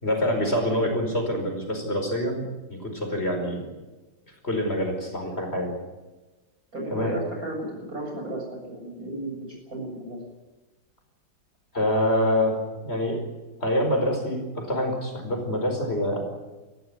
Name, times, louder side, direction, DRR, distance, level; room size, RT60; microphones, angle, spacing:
voice 1, 0.0-3.7 4.4-5.8 6.9-7.1 11.7-13.2 13.6-16.3, equal, 35° left, 3 dB, 5.2 m, -26 dB
voice 2, 6.7-9.4 9.7-10.2, right 1 dB, 55° right, 1 dB, 7.8 m, -34 dB
22.0 x 15.5 x 9.7 m, 1.2 s
omnidirectional pair, 1.9 m